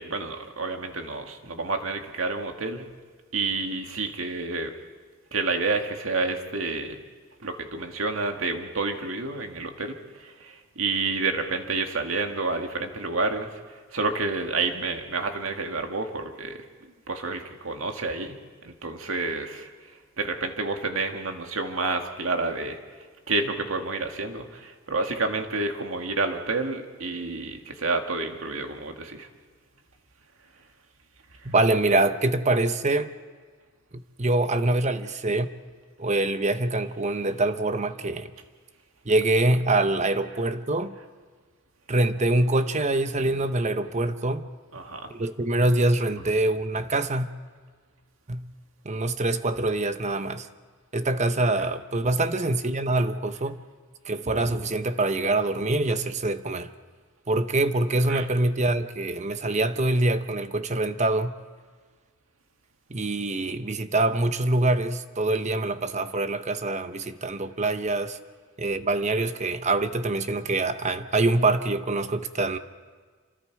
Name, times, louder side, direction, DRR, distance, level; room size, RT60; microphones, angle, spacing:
voice 1, 0.0-2.9 3.3-4.7 5.3-7.0 7.4-13.5 13.9-16.6 17.1-18.4 18.6-19.7 20.2-22.8 23.3-29.3 44.7-45.1 51.6-51.7 58.1-58.3, right 3 dB, 85° right, 2.0 m, -29 dB
voice 2, 31.4-33.1 33.9-35.5 36.0-38.3 39.0-41.0 41.9-44.4 45.1-47.3 48.3-48.5 48.8-50.5 50.9-53.6 54.0-56.7 57.3-61.3 62.9-68.2 68.6-72.6, right 2 dB, 35° right, 0.9 m, -25 dB
27.5 x 25.0 x 4.8 m
head